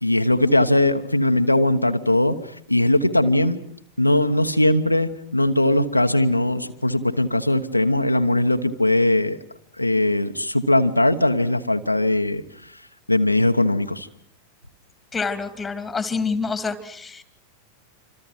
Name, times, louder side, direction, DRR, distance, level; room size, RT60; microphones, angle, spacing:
voice 1, 0.0-3.6 4.0-9.4 9.7-12.8 13.1-14.1, left 1 dB, 85° left, 6 dB, 1.1 m, -20 dB
voice 2, 15.1-17.2, left 4 dB, 15° left, 12 dB, 2.6 m, -27 dB
27.0 x 26.5 x 6.0 m, 0.64 s
figure-of-eight pair, 90°, 0 cm